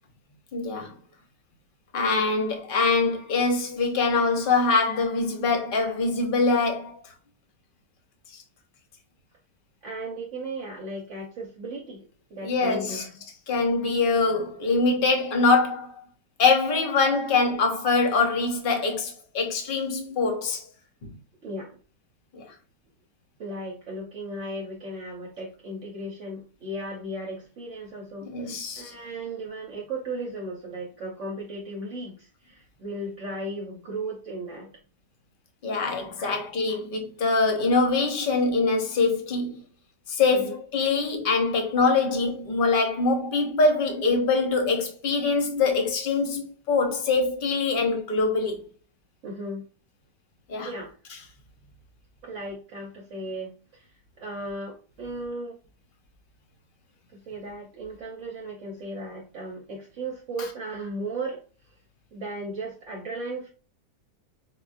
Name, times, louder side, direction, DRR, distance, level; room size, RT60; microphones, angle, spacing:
voice 1, 0.5-0.9 1.9-7.0 12.4-13.0 13.5-15.9 16.4-20.6 22.3-22.4 28.2-28.9 35.6-39.6 40.1-48.6 50.5-50.7, left 3 dB, 45° left, 0.8 m, -24 dB
voice 2, 9.8-13.2 21.4-21.8 23.4-34.7 36.2-36.8 40.3-40.6 49.2-49.6 50.6-50.9 52.2-55.6 57.1-61.4 62.1-63.5, right 1 dB, 60° right, 1.0 m, -36 dB
5.2 x 2.3 x 2.5 m
omnidirectional pair, 1.7 m